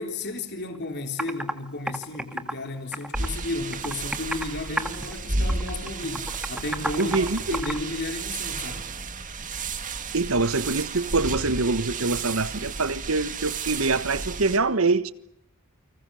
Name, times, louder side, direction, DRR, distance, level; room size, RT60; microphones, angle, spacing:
voice 1, 0.0-8.9, left 2 dB, 50° left, 3.8 m, -33 dB
Computer keyboard, 0.7-0.8 1.2-1.5 1.9-3.4 3.7-4.5 4.8-5.2 5.5-7.8, right 1 dB, 5° right, 1.5 m, -31 dB
sound 1, 3.1-14.6, right 3 dB, 35° right, 2.0 m, -32 dB
voice 2, 7.0-7.6 10.1-15.1, right 3 dB, 70° right, 1.3 m, -24 dB
30.0 x 25.5 x 6.4 m
head